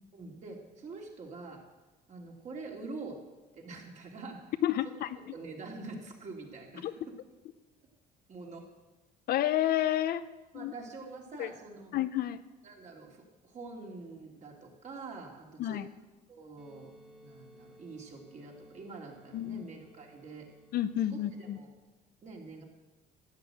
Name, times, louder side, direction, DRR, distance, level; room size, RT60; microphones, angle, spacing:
voice 1, 0.1-1.7 2.1-3.2 3.5-4.5 5.2-6.9 8.3-8.7 10.5-11.9 12.6-15.8 16.3-16.9 17.2-20.5 21.1-21.7 22.2-22.6, right 3 dB, 45° right, 0 dB, 3.0 m, -45 dB
voice 2, 4.6-5.1 6.8-6.9 9.3-10.2 10.5-10.7 11.4-11.5 11.9-12.4 15.6-15.9 19.3-19.6 20.7-21.6, left 12 dB, 65° left, 12 dB, 0.7 m, -30 dB
sound 1, 16.6-21.6, equal, 5° right, 1.8 m, -58 dB
13.0 x 8.6 x 7.8 m, 1.2 s
cardioid pair, 110°, 17 cm